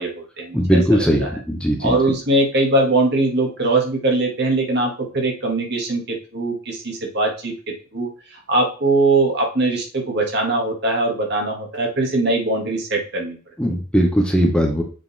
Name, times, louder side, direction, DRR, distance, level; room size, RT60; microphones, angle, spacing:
voice 1, 0.0-0.6 0.9-1.3 1.8-8.1 8.5-13.4, right 2 dB, 55° right, 1 dB, 1.8 m, -21 dB
voice 2, 0.5-2.0 13.6-14.8, equal, 5° left, 1 dB, 1.1 m, -18 dB
7.3 x 3.9 x 4.1 m, 0.37 s
head